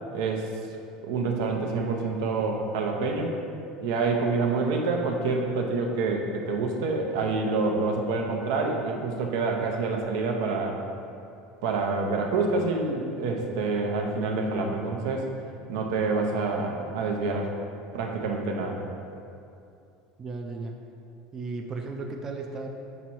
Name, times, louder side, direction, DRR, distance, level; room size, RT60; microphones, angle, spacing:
voice 1, 0.1-0.5 1.0-3.4 3.8-10.8 11.6-15.3 15.7-17.5 17.9-18.8, right 3 dB, 80° right, 1 dB, 0.8 m, -27 dB
voice 2, 20.2-20.8 21.3-22.7, right 3 dB, 20° right, 2 dB, 0.4 m, -35 dB
6.1 x 4.2 x 4.5 m, 2.5 s
cardioid pair, 150°, 2 cm